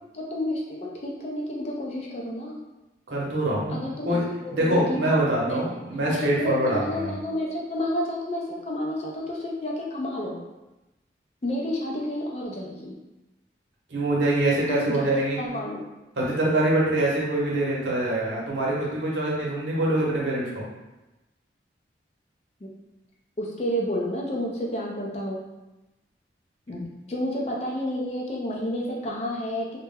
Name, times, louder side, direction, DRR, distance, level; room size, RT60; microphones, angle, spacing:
voice 1, 0.1-2.6 3.7-5.1 5.5-5.7 6.1-10.4 11.4-13.0 14.7-15.1 15.4-15.8 22.6-22.7 23.4-25.5 26.7-29.8, left 1 dB, 35° left, -3 dB, 0.4 m, -30 dB
voice 2, 3.1-4.2 4.5-7.1 13.9-15.4 16.2-20.6, right 1 dB, 85° right, -4 dB, 0.8 m, -24 dB
2.1 x 2.0 x 3.4 m, 1.0 s
head